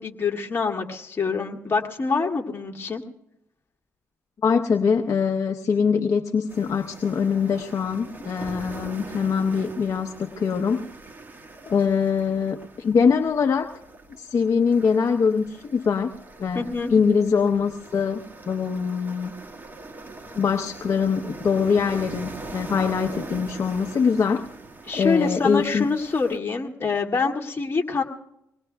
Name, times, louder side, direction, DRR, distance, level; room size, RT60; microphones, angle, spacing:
voice 1, 0.0-3.0 16.5-16.9 24.9-28.0, left 4 dB, 35° left, 1 dB, 2.1 m, -25 dB
voice 2, 4.4-10.8 11.7-13.7 14.2-16.1 16.4-19.3 20.3-24.4 24.9-25.9, left 6 dB, 50° left, 6 dB, 0.8 m, -23 dB
sound 1, 6.5-26.4, right 2 dB, 30° right, 1.5 m, -42 dB
25.0 x 19.5 x 2.3 m, 0.81 s
cardioid pair, 90°, 7 cm